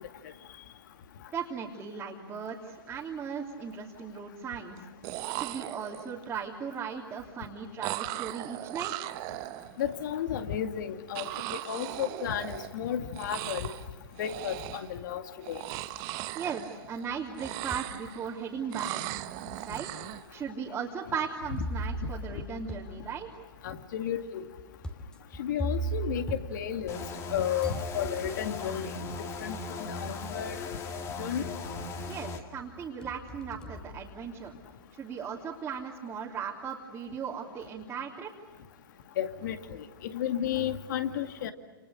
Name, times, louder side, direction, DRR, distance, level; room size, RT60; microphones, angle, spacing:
voice 1, 1.3-4.8 5.3-9.1 16.3-19.2 19.7-19.9 20.3-23.3 32.1-34.5 35.0-38.3, right 6 dB, 15° right, -3 dB, 3.1 m, -37 dB
sound 1, 2.6-2.8 3.1-3.7 4.8-4.9 5.0-6.2 7.8-10.0 11.1-12.9 13.1-13.9 14.2-15.0 15.4-17.1 17.3-18.3 18.7-20.3, right 18 dB, 30° right, 0.9 m, -38 dB
voice 2, 9.8-13.7 14.2-15.6 23.6-24.4 25.4-27.0 27.3-28.9 29.4-30.7 31.2-31.5 39.2-41.5, left 9 dB, 55° left, 7 dB, 2.4 m, -33 dB
sound 2, 17.1-18.0 18.6-18.7 19.6-19.7 21.6-27.3 27.6-28.6 29.8-29.9 30.4-30.8 31.2-32.0 32.4-34.7, right 2 dB, 5° left, 2.3 m, -39 dB
sound 3, 26.9-32.4, left 3 dB, 20° left, 2.3 m, -38 dB
29.5 x 28.5 x 6.5 m, 1.3 s
hypercardioid pair, 130°, 12 cm